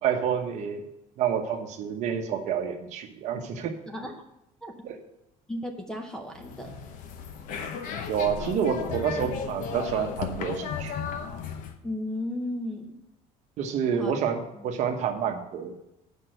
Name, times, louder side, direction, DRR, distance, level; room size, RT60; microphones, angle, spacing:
voice 1, 0.0-0.9 1.2-3.7 4.8-5.0 8.1-10.9 13.6-15.8, right 8 dB, 50° right, 5 dB, 1.0 m, -28 dB
voice 2, 3.9-4.2 4.6-4.7 5.5-6.8 11.8-13.0 13.9-14.2 14.5-14.6, left 1 dB, 5° left, 4 dB, 0.6 m, -34 dB
sound 1, 6.3-11.8, left 7 dB, 60° left, 0.9 m, -35 dB
8.2 x 5.4 x 7.7 m, 0.88 s
cardioid pair, 180°, 15 cm